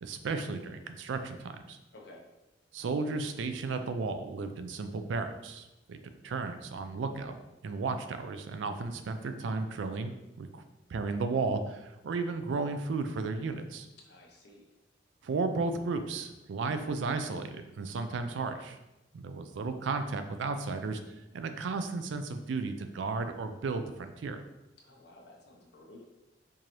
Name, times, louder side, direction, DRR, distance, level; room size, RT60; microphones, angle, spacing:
voice 1, 0.0-1.8 2.7-6.0 6.2-7.4 7.6-10.6 10.9-13.9 15.2-18.8 19.1-21.0 21.3-24.4, right 4 dB, 70° right, 8 dB, 0.3 m, -34 dB
voice 2, 1.9-2.3 14.0-14.7 24.8-26.0, left 2 dB, 60° left, 0 dB, 0.7 m, -53 dB
4.6 x 2.6 x 2.9 m, 0.98 s
head